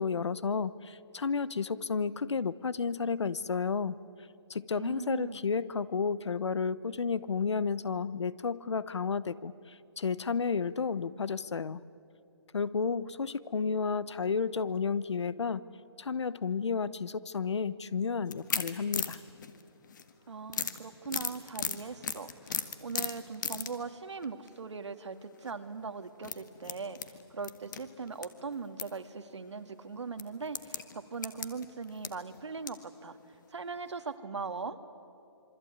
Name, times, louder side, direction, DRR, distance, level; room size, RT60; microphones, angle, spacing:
voice 1, 0.0-4.0 4.5-9.5 10.0-11.8 12.5-15.6 16.0-19.2, left 5 dB, 80° left, 18 dB, 1.0 m, -32 dB
voice 2, 4.8-5.4 20.3-33.2 33.5-34.8, right 4 dB, 85° right, 9 dB, 2.0 m, -40 dB
sound 1, 18.3-20.1 20.5-23.8 24.2-24.5 25.3-25.5 26.2-28.3 28.5-28.9 29.3-29.4 30.2-32.9 33.3-33.4 33.8-33.9, left 7 dB, 45° left, 1.7 m, -36 dB
26.5 x 23.5 x 9.4 m, 2.7 s
hypercardioid pair, 165°, 14 cm